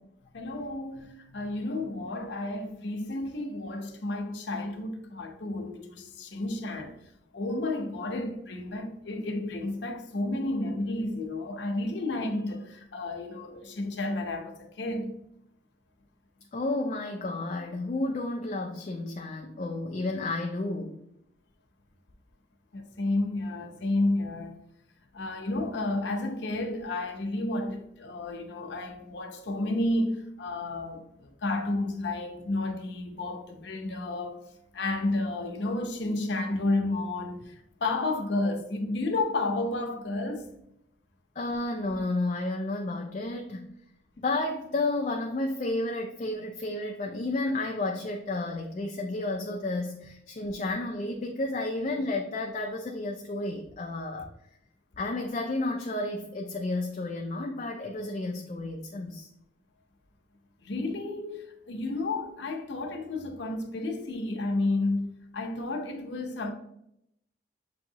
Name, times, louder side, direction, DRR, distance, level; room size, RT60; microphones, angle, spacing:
voice 1, 0.3-7.0 7.3-15.1 22.7-24.5 25.1-34.4 34.7-40.5 60.6-65.1 65.3-66.5, left 2 dB, 75° left, 0.7 m, -31 dB
voice 2, 16.5-21.0 41.4-43.7 44.2-54.3 55.0-59.3, left 2 dB, 40° left, 0.4 m, -31 dB
7.0 x 2.7 x 2.7 m
head